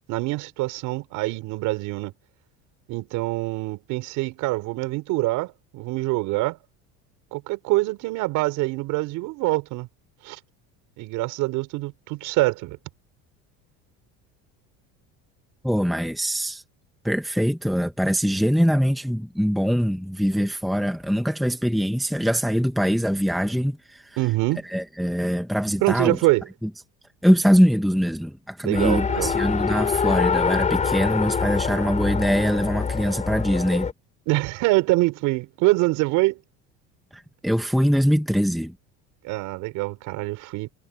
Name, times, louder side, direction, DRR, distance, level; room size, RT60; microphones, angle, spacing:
voice 1, 0.1-2.1 2.9-6.6 7.3-9.9 10.2-10.4 11.0-12.8 24.2-24.6 25.8-26.5 28.6-29.3 34.3-36.4 39.2-40.7, right 21 dB, 65° right, 5.0 m, -25 dB
voice 2, 15.6-16.6 17.0-24.2 24.7-26.2 26.6-26.7 27.2-33.9 37.1-38.7, equal, ahead, 1.4 m, -23 dB
Race car auto racing, 28.7-33.9, left 6 dB, 20° left, 3.9 m, -25 dB
cardioid pair, 135°, 33 cm